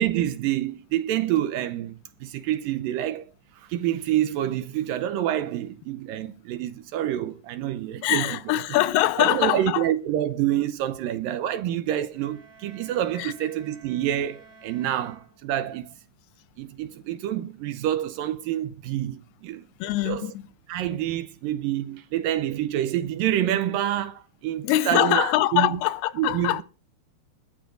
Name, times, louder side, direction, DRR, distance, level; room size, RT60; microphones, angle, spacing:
voice 1, 0.0-3.3 3.6-8.4 9.2-15.9 16.6-19.6 20.1-20.3 20.7-25.8 26.2-26.6, right 12 dB, 75° right, 2.2 m, -27 dB
voice 2, 8.0-9.9 13.2-13.3 19.8-20.4 24.6-26.6, left 15 dB, 85° left, 2.7 m, -23 dB
sound 1, 12.1-15.9, right 5 dB, 45° right, 4.6 m, -52 dB
21.0 x 12.0 x 2.6 m
omnidirectional pair, 4.5 m